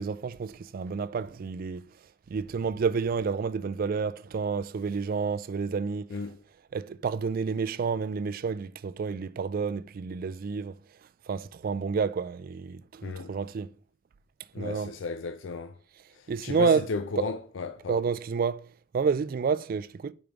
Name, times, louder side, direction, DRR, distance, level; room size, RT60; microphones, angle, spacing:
voice 1, 0.0-1.8 2.3-6.1 6.7-10.7 11.3-13.7 14.6-14.9 16.3-16.9 17.2-17.3 17.9-18.6 18.9-20.1, right 5 dB, 45° right, 0.3 m, -29 dB
voice 2, 14.5-15.7 16.2-18.0, left 3 dB, 65° left, 0.4 m, -34 dB
5.2 x 5.1 x 4.5 m
head